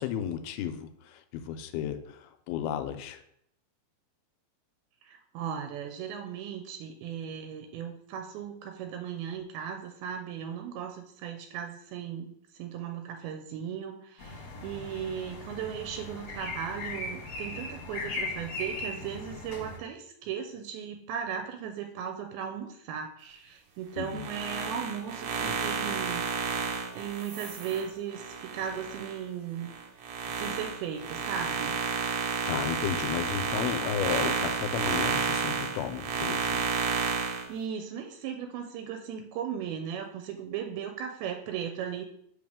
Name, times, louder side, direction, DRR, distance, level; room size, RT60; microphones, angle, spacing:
voice 1, 0.0-3.2 24.0-24.3 32.5-36.5, left 9 dB, 90° left, 8 dB, 2.5 m, -33 dB
voice 2, 5.0-26.2 26.6-29.7 30.0-31.8 37.2-42.1, right 8 dB, 85° right, 4 dB, 2.5 m, -37 dB
sound 1, 14.2-19.8, left 2 dB, 55° left, 1.2 m, -38 dB
sound 2, 24.1-29.2 29.6-37.5, right 5 dB, 70° right, 1.8 m, -31 dB
6.1 x 5.5 x 3.6 m, 0.70 s
omnidirectional pair, 4.4 m